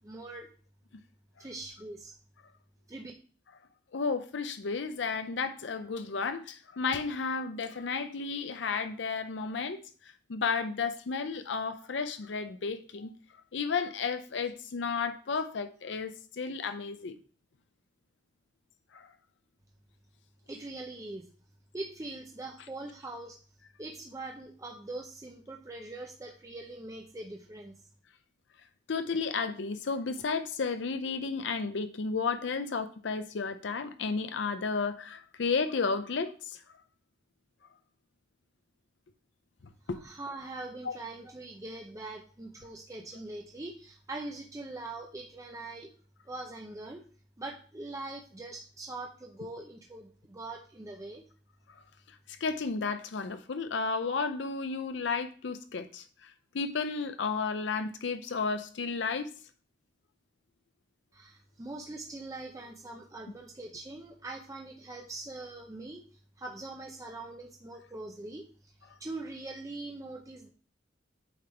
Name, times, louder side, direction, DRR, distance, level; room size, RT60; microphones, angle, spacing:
voice 1, 0.0-0.5 1.4-2.1 2.9-3.1 20.5-21.3 21.7-23.4 23.8-27.7 39.9-45.9 46.2-47.0 47.4-51.2 61.1-66.0 66.4-70.5, right 2 dB, 15° right, 0.5 m, -42 dB
voice 2, 3.9-9.8 10.3-13.1 13.5-17.1 18.9-19.1 28.9-36.6 39.9-40.0 40.8-40.9 52.1-59.3, left 4 dB, 70° left, 0.5 m, -33 dB
8.6 x 3.5 x 4.4 m
head